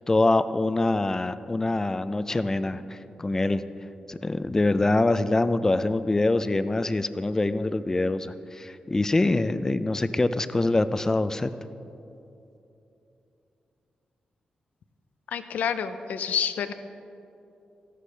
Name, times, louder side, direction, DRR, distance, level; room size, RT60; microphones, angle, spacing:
voice 1, 0.1-3.6 4.1-11.5, left 2 dB, 20° left, 12 dB, 0.4 m, -24 dB
voice 2, 15.3-16.7, left 7 dB, 90° left, 10 dB, 0.5 m, -28 dB
14.5 x 11.5 x 3.3 m, 2.8 s
wide cardioid pair, 110°, 3 cm